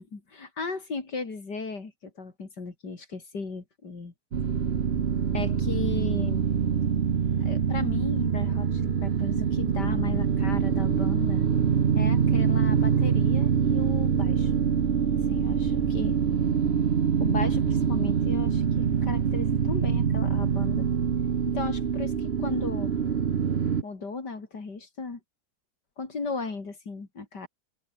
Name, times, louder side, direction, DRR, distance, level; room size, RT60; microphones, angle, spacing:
voice 1, 0.0-4.1 5.3-6.4 7.4-11.4 12.0-14.6 15.3-16.2 17.2-20.9 21.5-22.9 23.8-25.2 26.0-27.5, left 4 dB, 65° left, 4.0 m, -35 dB
sound 1, 4.3-23.8, right 7 dB, 40° right, 1.1 m, -25 dB
omnidirectional pair, 1.9 m